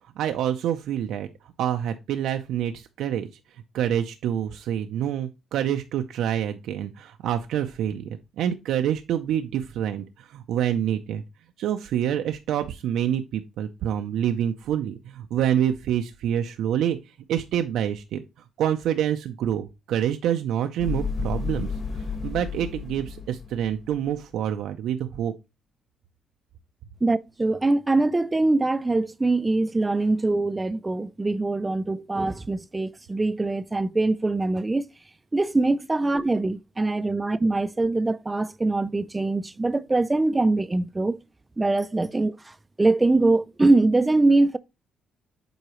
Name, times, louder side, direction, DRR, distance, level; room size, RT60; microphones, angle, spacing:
voice 1, 0.2-1.3 1.6-3.3 3.7-11.2 11.6-17.0 17.3-18.2 18.6-21.7 22.2-25.3, right 10 dB, 90° right, 0.5 m, -27 dB
sound 1, 20.8-24.2, left 5 dB, 40° left, 1.6 m, -32 dB
voice 2, 27.0-34.9 35.3-41.2 41.6-44.6, right 2 dB, 15° right, 0.3 m, -23 dB
8.0 x 4.7 x 3.0 m
cardioid pair, 155°, 0 cm